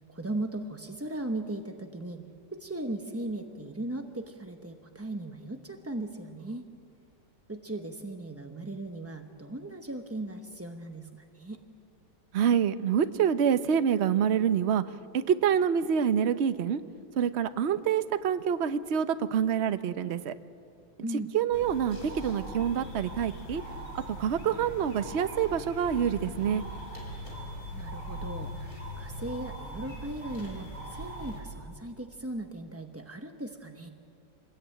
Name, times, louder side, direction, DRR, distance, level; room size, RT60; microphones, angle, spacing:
voice 1, 0.1-2.2 2.5-6.6 7.5-11.6 21.0-21.3 27.7-33.9, right 2 dB, 15° right, 4 dB, 0.5 m, -38 dB
voice 2, 12.3-14.8 15.1-16.8 17.2-20.3 21.3-23.6 24.1-26.6, right 8 dB, 50° right, 11 dB, 0.8 m, -26 dB
sound 1, 21.5-31.4, equal, 45° left, 5.4 m, -40 dB
26.5 x 20.0 x 9.0 m, 2.5 s
omnidirectional pair, 2.1 m